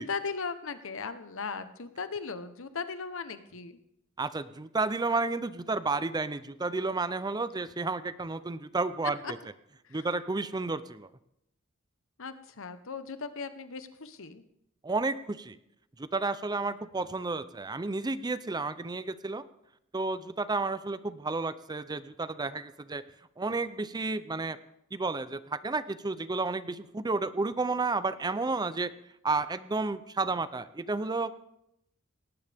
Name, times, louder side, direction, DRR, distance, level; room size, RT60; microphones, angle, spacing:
voice 1, 0.0-3.8 9.2-9.3 9.8-10.1 12.2-14.4 16.7-16.8, left 5 dB, 65° left, 11 dB, 1.0 m, -38 dB
voice 2, 4.2-9.2 9.9-11.1 14.8-15.6 16.0-19.4 19.9-23.0 23.4-24.6 24.9-28.9 29.2-31.3, right 3 dB, 20° right, 14 dB, 0.5 m, -31 dB
18.5 x 18.0 x 3.5 m, 0.79 s
head